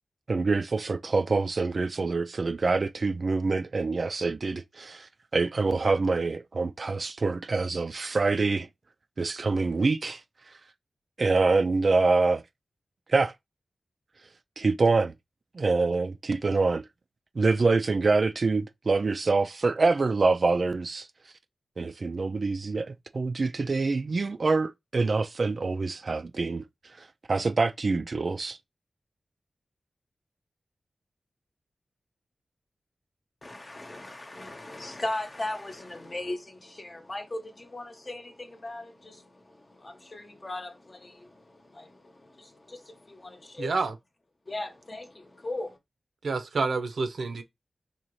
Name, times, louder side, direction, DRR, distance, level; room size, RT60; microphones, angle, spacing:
voice 1, 0.3-8.7 9.2-10.2 11.2-12.4 13.1-13.3 14.6-15.1 15.5-16.9 17.4-21.1 21.8-26.7 27.0-28.6, right 3 dB, 55° right, 0.3 m, -25 dB
voice 2, 33.4-43.7 44.5-45.8, left 2 dB, 35° left, 0.9 m, -38 dB
voice 3, 43.6-43.9 46.2-47.4, right 4 dB, 80° right, 0.7 m, -28 dB
4.1 x 2.9 x 3.1 m
wide cardioid pair, 80°, 0 cm